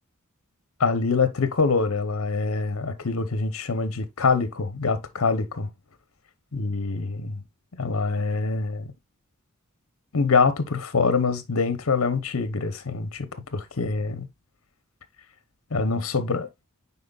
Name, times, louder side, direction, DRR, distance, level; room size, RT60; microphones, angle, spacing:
voice 1, 0.8-5.7 6.5-7.4 7.7-8.9 10.1-14.3 15.7-16.5, left 4 dB, 65° left, 0.9 m, -25 dB
9.3 x 4.2 x 2.4 m
head